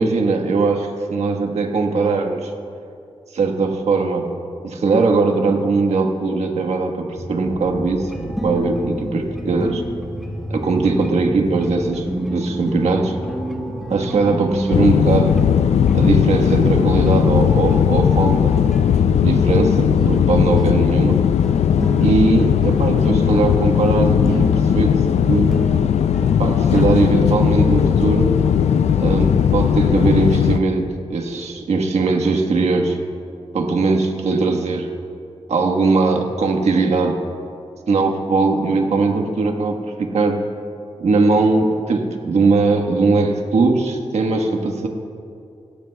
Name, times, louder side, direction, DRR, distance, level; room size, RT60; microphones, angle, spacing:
voice 1, 0.0-2.5 3.3-4.3 4.6-8.1 8.4-9.8 10.5-13.2 13.9-15.3 15.9-18.6 19.0-21.2 22.0-24.5 24.7-25.0 25.3-25.5 26.4-28.3 29.0-33.0 33.5-34.9 35.5-37.2 37.9-40.4 41.0-44.9, right 3 dB, 85° right, 3 dB, 1.4 m, -20 dB
sound 1, 7.1-15.4, equal, 25° left, 3.9 m, -34 dB
sound 2, 8.1-27.9, equal, ahead, 1.0 m, -30 dB
Landing in Lisbon, 14.7-30.6, left 8 dB, 90° left, 0.4 m, -17 dB
27.5 x 13.5 x 2.3 m, 2.5 s
wide cardioid pair, 135°, 11 cm